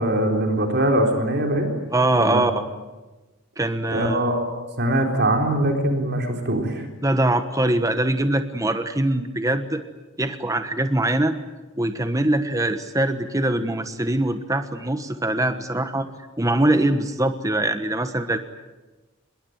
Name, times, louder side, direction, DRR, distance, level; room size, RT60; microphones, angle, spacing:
voice 1, 0.0-1.7 2.2-2.4 3.9-4.4 4.8-6.9, right 1 dB, 55° right, 3 dB, 4.1 m, -22 dB
voice 2, 1.9-2.5 3.6-4.3 7.0-9.8 10.2-11.4 11.8-16.1 16.4-18.4, right 1 dB, 15° right, 8 dB, 1.3 m, -22 dB
26.5 x 21.5 x 9.5 m, 1.2 s
head